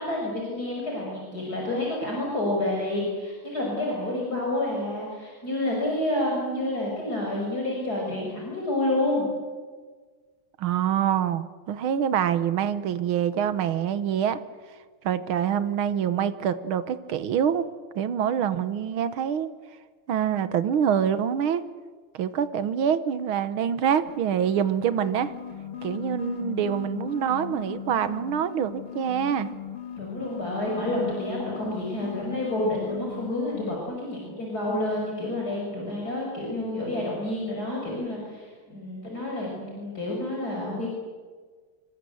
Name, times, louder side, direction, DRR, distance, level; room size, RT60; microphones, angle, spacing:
voice 1, 0.0-9.3 30.0-40.9, left 1 dB, 45° left, -2 dB, 6.1 m, -29 dB
voice 2, 10.6-14.4 15.0-17.7 18.0-19.5 20.1-21.7 22.1-25.3 25.8-29.5, right 8 dB, 85° right, 13 dB, 2.0 m, -25 dB
sound 1, 24.0-33.8, left 8 dB, 70° left, 3.1 m, -38 dB
26.5 x 23.5 x 8.0 m, 1.5 s
omnidirectional pair, 2.3 m